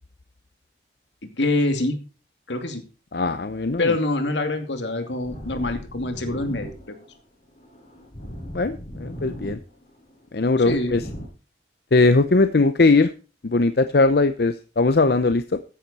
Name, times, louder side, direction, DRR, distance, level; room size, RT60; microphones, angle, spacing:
voice 1, 1.2-2.0 2.5-2.8 3.8-7.0 10.6-11.0, left 2 dB, 80° left, 6 dB, 2.5 m, -25 dB
voice 2, 3.1-3.9 8.5-9.6 10.3-11.0 11.9-13.1 13.4-15.6, left 3 dB, 60° left, 11 dB, 0.6 m, -20 dB
sound 1, 4.6-11.3, equal, 35° left, 4.6 m, -39 dB
14.0 x 10.0 x 4.2 m, 0.35 s
head